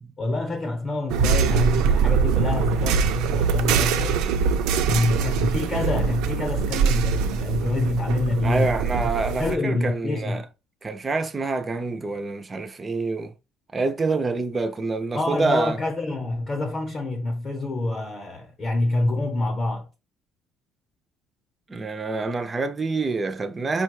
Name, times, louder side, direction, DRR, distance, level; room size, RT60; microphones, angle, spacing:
voice 1, 0.2-4.3 4.8-9.1 9.4-10.5 15.2-19.9, left 2 dB, 30° left, 0.8 m, -26 dB
sound 1, 1.1-9.5, right 6 dB, 80° right, 0.5 m, -23 dB
voice 2, 8.4-10.4 10.8-13.3 13.7-15.8 21.7-23.8, right 3 dB, 15° right, 0.4 m, -26 dB
5.0 x 2.2 x 4.6 m
cardioid pair, 165°, 0 cm